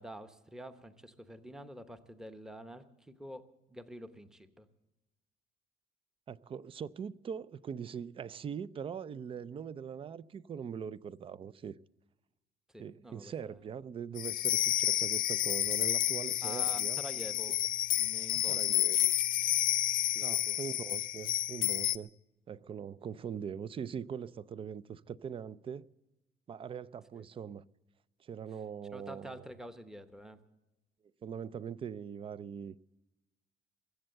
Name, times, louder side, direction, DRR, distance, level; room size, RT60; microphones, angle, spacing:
voice 1, 0.0-4.7 12.7-13.6 16.4-17.6 17.9-18.8 20.1-20.6 27.1-27.3 28.9-30.4, right 1 dB, 5° right, 0.9 m, -48 dB
voice 2, 6.3-11.7 12.8-17.0 18.3-19.2 20.2-22.1 22.5-25.9 26.5-27.6 28.2-29.4 31.2-32.8, right 7 dB, 30° right, 0.4 m, -42 dB
sound 1, 14.2-22.0, left 13 dB, 55° left, 0.5 m, -30 dB
22.0 x 7.8 x 7.7 m
cardioid pair, 110°, 17 cm